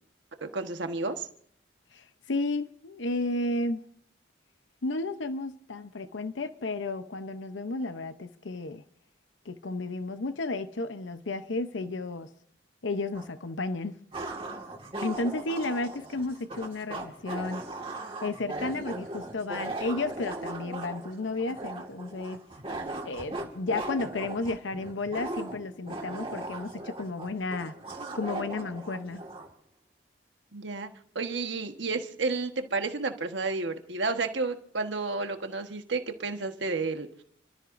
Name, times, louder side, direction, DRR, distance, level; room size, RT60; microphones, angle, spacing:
voice 1, 0.4-1.3 30.5-30.9 31.1-37.1, right 3 dB, 75° right, 1.3 m, -31 dB
voice 2, 1.9-3.8 4.8-8.8 9.5-12.3 12.8-14.0 15.0-17.6 18.2-22.4 23.0-27.7 28.1-29.2, left 2 dB, 85° left, 0.8 m, -32 dB
sound 1, 13.1-13.3 14.1-29.5, right 2 dB, 30° right, 1.8 m, -38 dB
29.5 x 13.5 x 2.6 m
head